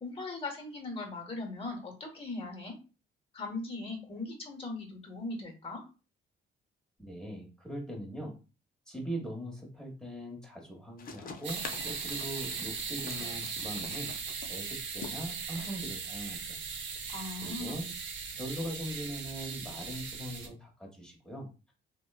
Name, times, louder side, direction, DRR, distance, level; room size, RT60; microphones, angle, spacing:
voice 1, 0.0-2.7 3.3-5.8 17.1-17.8, left 3 dB, 30° left, 2 dB, 1.1 m, -39 dB
voice 2, 7.0-8.4 8.9-14.1 14.4-16.6 17.4-17.9 18.3-21.7, right 1 dB, 5° left, -1 dB, 1.1 m, -41 dB
sound 1, 11.0-17.4, left 5 dB, 45° left, 0.5 m, -47 dB
sound 2, 11.4-20.5, right 5 dB, 70° right, 0.8 m, -38 dB
2.9 x 2.2 x 2.3 m, 0.33 s
cardioid pair, 90°, 20 cm